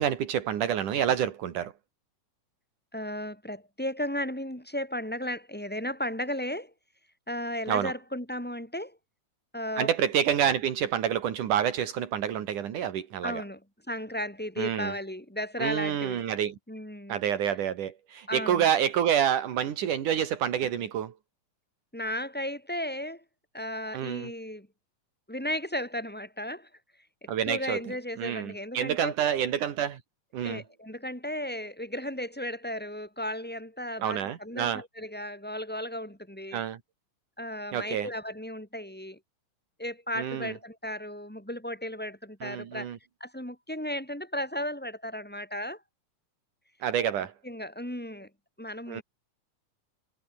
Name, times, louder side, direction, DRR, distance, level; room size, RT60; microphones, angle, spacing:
voice 1, 0.0-1.7 7.7-7.9 9.8-13.4 14.6-14.9 15.6-16.6 17.1-21.1 23.9-24.3 27.3-27.8 28.2-30.0 30.3-30.6 34.0-34.8 36.5-36.8 37.7-38.1 40.2-40.5 42.4-43.0 46.8-47.3 48.9-49.0, right 9 dB, 80° right, 3.5 m, -28 dB
voice 2, 2.9-6.7 7.3-9.0 9.5-9.9 13.2-13.6 13.9-16.2 16.7-17.2 18.3-18.7 21.9-23.2 23.5-24.7 25.3-26.7 27.4-29.1 30.4-36.6 37.4-39.2 39.8-42.9 43.2-45.8 47.4-48.3 48.6-49.0, left 1 dB, 5° left, 6.7 m, -35 dB
omnidirectional pair, 3.6 m